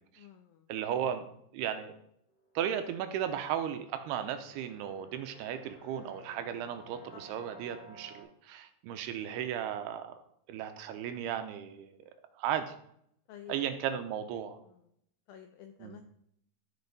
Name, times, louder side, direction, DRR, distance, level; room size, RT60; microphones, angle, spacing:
voice 1, 0.2-0.7 7.1-7.2 13.3-13.5 15.3-16.0, left 10 dB, 85° left, 6 dB, 2.1 m, -50 dB
voice 2, 0.7-1.3 1.5-2.0 2.6-10.2 10.5-12.0 12.4-12.7 13.5-14.6 15.8-16.0, right 9 dB, 80° right, 8 dB, 2.6 m, -35 dB
sound 1, 2.3-8.2, right 1 dB, 65° left, 6.4 m, -55 dB
13.5 x 5.4 x 4.0 m, 0.71 s
omnidirectional pair, 4.9 m